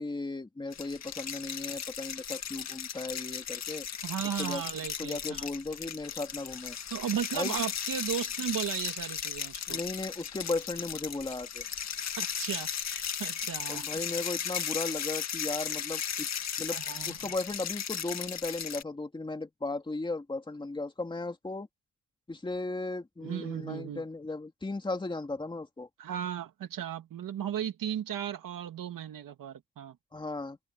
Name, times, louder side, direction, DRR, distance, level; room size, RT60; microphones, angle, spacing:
voice 1, 0.0-3.9 4.4-4.6 5.0-6.8 7.3-7.6 9.7-11.7 13.7-16.3 16.6-21.7 22.3-25.9 30.1-30.6, left 2 dB, 15° left, 2.8 m, -36 dB
sound 1, 0.7-18.8, left 8 dB, 55° left, 1.9 m, -36 dB
voice 2, 4.0-5.5 6.9-9.8 12.2-13.8 16.7-17.3 23.2-24.0 26.0-30.0, right 9 dB, 80° right, 2.4 m, -36 dB
open air
wide cardioid pair, 160°, 33 cm